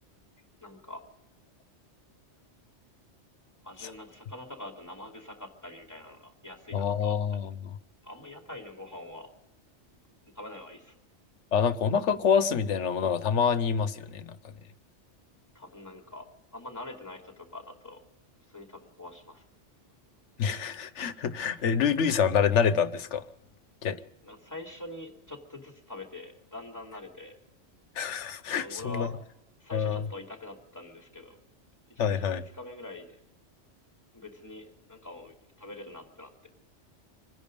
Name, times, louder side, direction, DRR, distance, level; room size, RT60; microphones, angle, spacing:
voice 1, 0.6-1.0 3.6-7.1 8.0-9.3 10.3-11.0 15.5-16.3 16.5-18.0 18.5-19.4 24.2-27.3 28.6-29.2 29.6-31.4 31.9-33.2 34.1-36.3, left 2 dB, 15° left, 2.7 m, -44 dB
voice 2, 6.7-7.7 11.5-14.5 20.4-23.2 23.8-24.0 27.9-29.1 29.7-30.1 32.0-32.4, left 7 dB, 80° left, 1.2 m, -27 dB
26.0 x 10.5 x 5.2 m
omnidirectional pair, 1.2 m